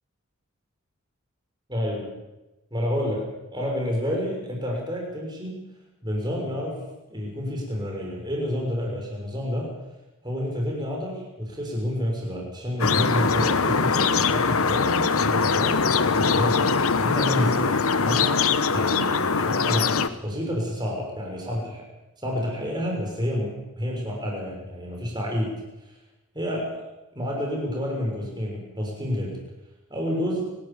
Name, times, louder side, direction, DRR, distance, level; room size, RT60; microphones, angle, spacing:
voice 1, 1.7-2.2 2.7-5.6 6.0-6.8 7.1-9.7 10.2-15.8 16.1-18.4 18.7-21.8 22.2-25.6 26.3-26.9 27.1-29.4 29.9-30.6, equal, 20° right, 0 dB, 6.5 m, -29 dB
sound 1, 12.8-20.1, left 5 dB, 75° left, 1.1 m, -22 dB
27.5 x 13.0 x 8.9 m, 1.0 s
head